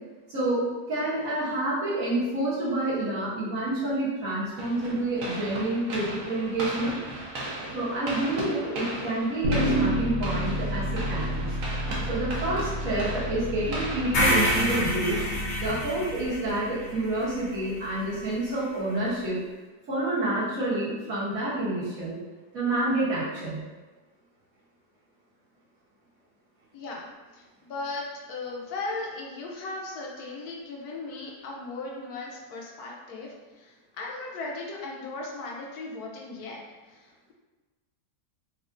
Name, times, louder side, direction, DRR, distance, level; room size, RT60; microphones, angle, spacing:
voice 1, 0.3-7.0 7.7-11.5 12.1-15.2 15.6-19.4 19.9-22.2 22.5-23.6, right 1 dB, 60° right, -9 dB, 1.5 m, -28 dB
sound 1, 4.6-15.9, right 1 dB, 85° right, 1.3 m, -37 dB
Bass guitar, 9.4-15.7, right 1 dB, 30° right, 0.7 m, -30 dB
sound 2, 14.1-18.3, left 1 dB, 55° left, 0.8 m, -28 dB
voice 2, 26.7-27.1 27.3-36.6 36.9-37.3, left 3 dB, 75° left, -2 dB, 1.2 m, -37 dB
4.2 x 2.4 x 2.5 m, 1.2 s
omnidirectional pair, 1.7 m